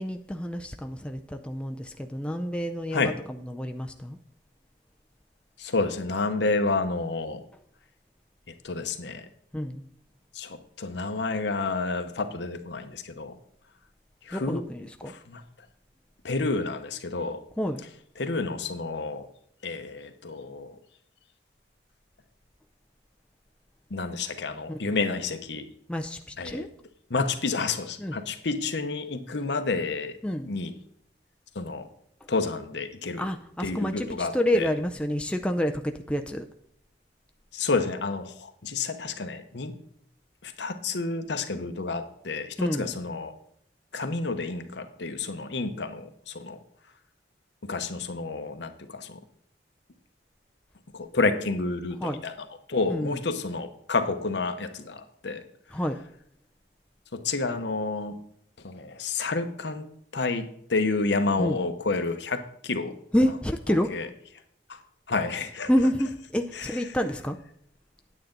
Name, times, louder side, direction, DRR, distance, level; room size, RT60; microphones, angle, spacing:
voice 1, 0.0-4.2 9.5-9.9 14.3-15.2 17.6-17.9 24.7-24.9 25.9-26.7 28.0-28.2 30.2-30.6 32.2-32.3 33.2-36.5 42.6-42.9 52.0-52.3 52.9-53.2 55.7-56.0 61.4-61.6 63.1-63.9 65.7-67.4, equal, 5° left, 5 dB, 0.4 m, -28 dB
voice 2, 5.6-7.4 8.6-9.3 10.3-13.4 14.2-14.6 15.0-15.4 16.2-17.4 18.2-19.3 19.6-20.7 23.9-25.7 26.4-26.7 27.1-30.1 30.4-30.7 31.5-31.9 32.3-33.2 33.6-34.7 37.5-39.7 40.4-43.3 43.9-46.6 47.6-49.2 50.9-52.3 52.7-55.4 57.1-58.2 58.6-59.9 60.1-63.0 63.9-64.1 64.7-64.8 65.1-65.7 66.6-66.7, left 3 dB, 70° left, 8 dB, 0.9 m, -30 dB
9.4 x 8.7 x 3.9 m, 0.70 s
head